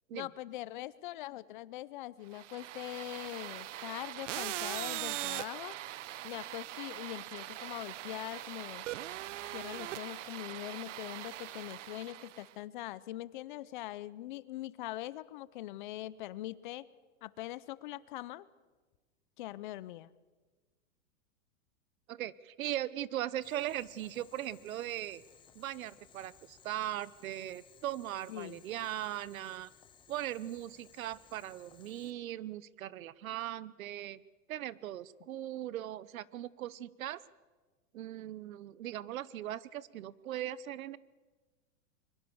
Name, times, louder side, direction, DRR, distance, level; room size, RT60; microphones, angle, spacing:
voice 1, 0.1-5.8 6.2-8.9 9.5-16.9 17.2-18.4 19.4-20.1 28.3-28.6, left 15 dB, 40° left, 19 dB, 0.6 m, -42 dB
sound 1, 2.3-12.5, right 14 dB, 65° right, 0.8 m, -41 dB
voice 2, 22.1-25.2 25.5-29.7 30.1-34.2 34.5-37.2 37.9-41.0, right 12 dB, 90° right, 20 dB, 1.0 m, -39 dB
Boiling, 23.4-32.1, left 8 dB, 10° left, 1.0 m, -61 dB
23.0 x 21.5 x 7.1 m, 1.3 s
supercardioid pair, 170°, 40 cm